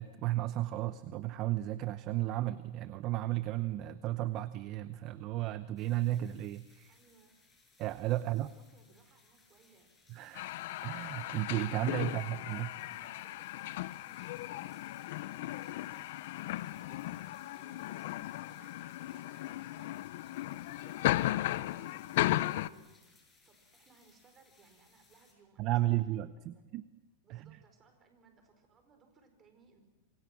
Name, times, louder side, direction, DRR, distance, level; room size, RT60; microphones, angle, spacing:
voice 1, 0.0-6.9 7.8-8.5 10.1-10.6 10.8-12.7 25.6-26.9 27.3-27.6, right 15 dB, 40° right, 14 dB, 0.8 m, -34 dB
sound 1, 5.8-25.3, left 3 dB, 10° left, 6.1 m, -67 dB
voice 2, 6.9-7.4 8.1-9.9 11.9-22.9 23.4-26.6 27.2-29.8, right 4 dB, 25° right, 6 dB, 5.0 m, -64 dB
sound 2, 10.3-22.7, left 15 dB, 65° left, 0.8 m, -36 dB
27.5 x 24.5 x 6.2 m, 1.1 s
supercardioid pair, 145°, 0 cm